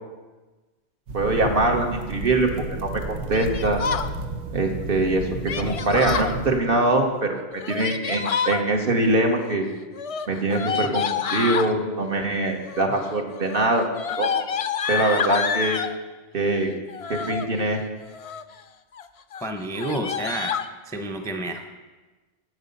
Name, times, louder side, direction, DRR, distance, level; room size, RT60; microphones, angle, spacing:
voice 1, 1.1-3.8 4.5-9.7 10.3-14.5 14.9-15.8 16.3-16.7 17.1-17.8, right 2 dB, 55° right, 3 dB, 1.4 m, -23 dB
sound 1, 1.1-6.6, right 3 dB, 90° right, 1.1 m, -32 dB
Yell, 3.3-4.1 5.5-6.3 7.5-8.6 9.9-11.7 12.6-13.0 13.3-16.0 16.9-17.5 18.0-18.5 18.9-19.1 19.3-19.4 19.8-20.7, left 7 dB, 60° left, 0.3 m, -28 dB
voice 2, 19.4-20.6 20.9-21.7, right 1 dB, 5° left, 4 dB, 0.5 m, -29 dB
9.8 x 7.8 x 5.3 m, 1.2 s
omnidirectional pair, 1.1 m